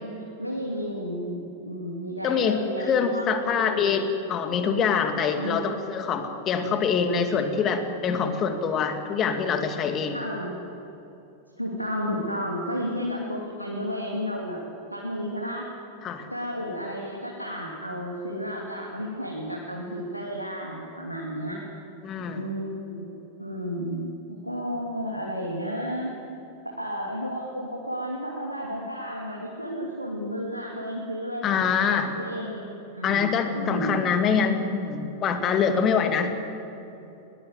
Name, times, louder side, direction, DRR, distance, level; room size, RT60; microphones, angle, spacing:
voice 1, 0.4-4.0 5.4-5.7 10.1-10.6 11.6-14.6 14.9-15.7 16.3-21.6 22.3-26.2 26.6-31.5 32.1-32.7 32.9-34.0, equal, 90° left, -2 dB, 2.7 m, -32 dB
voice 2, 2.2-4.0 4.3-10.2 16.0-16.3 22.0-22.4 31.4-32.1 33.0-36.3, left 6 dB, 30° left, 6 dB, 2.4 m, -25 dB
21.5 x 19.5 x 8.2 m, 2.8 s
figure-of-eight pair, 90°, 0 cm